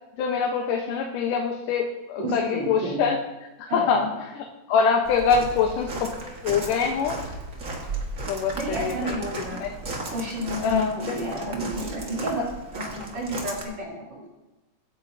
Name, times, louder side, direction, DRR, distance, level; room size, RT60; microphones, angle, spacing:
voice 1, 0.2-3.2 3.6-4.1 4.7-7.2 8.3-9.2 9.6-9.7 10.6-10.9, left 6 dB, 85° left, 1 dB, 2.5 m, -24 dB
voice 2, 2.2-3.0 3.7-4.2 8.5-9.6 10.1-14.3, equal, 55° right, -4 dB, 4.4 m, -31 dB
Walk footsteps, 5.0-13.6, right 2 dB, 40° right, 1.2 m, -35 dB
23.5 x 9.3 x 2.7 m, 1.1 s
omnidirectional pair, 3.6 m